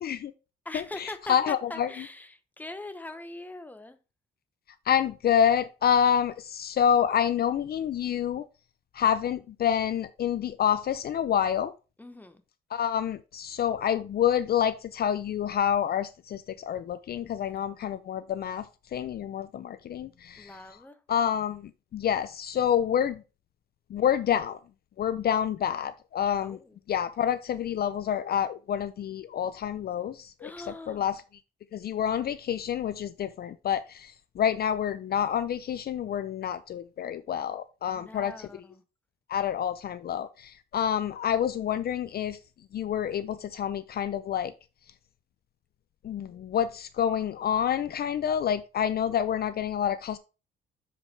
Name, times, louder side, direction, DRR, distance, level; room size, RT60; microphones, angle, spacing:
voice 1, 0.0-0.3 0.7-1.9 4.9-8.5 8.9-11.7 12.7-18.7 18.9-20.5 21.1-21.6 21.9-23.2 23.9-24.6 25.0-26.6 26.9-30.5 30.9-31.2 31.7-38.5 39.3-42.4 42.7-44.5 46.0-50.2, left 9 dB, 50° left, 0.5 m, -28 dB
voice 2, 0.6-4.0 12.0-12.4 20.4-21.0 26.4-26.8 30.4-31.0 37.9-38.8, left 2 dB, 10° left, 0.9 m, -42 dB
6.9 x 5.1 x 3.3 m
cardioid pair, 90°, 20 cm